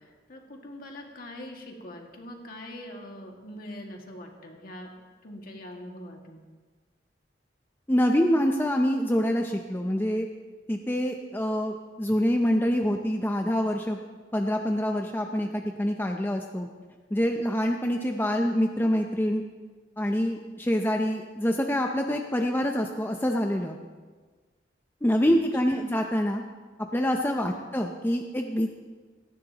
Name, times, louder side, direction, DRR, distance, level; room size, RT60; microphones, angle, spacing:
voice 1, 0.0-4.9 5.2-6.4 25.8-25.9 27.5-27.7, left 1 dB, 55° left, 1 dB, 2.0 m, -43 dB
voice 2, 7.9-10.3 10.7-14.0 14.3-16.7 17.1-19.4 20.0-23.8 25.0-26.4 26.9-28.7, equal, 10° left, 3 dB, 0.6 m, -26 dB
18.0 x 14.0 x 2.9 m, 1.4 s
head